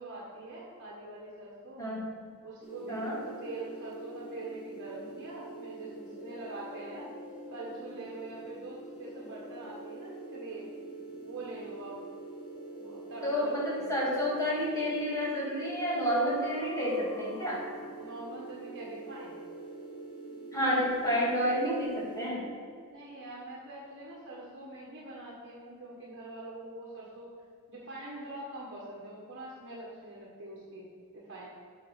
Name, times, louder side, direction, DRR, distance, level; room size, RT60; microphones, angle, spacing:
voice 1, 0.0-1.9 2.4-7.1 7.5-10.7 11.2-12.0 12.8-14.0 18.0-19.4 22.8-27.3 27.7-30.9 31.1-31.5, right 2 dB, 55° right, -5 dB, 1.4 m, -44 dB
sound 1, 2.6-22.3, right 2 dB, 35° left, 2.5 m, -45 dB
voice 2, 13.2-17.6 20.5-22.4, equal, 15° left, -6 dB, 2.5 m, -30 dB
7.8 x 5.7 x 6.4 m, 2.2 s
head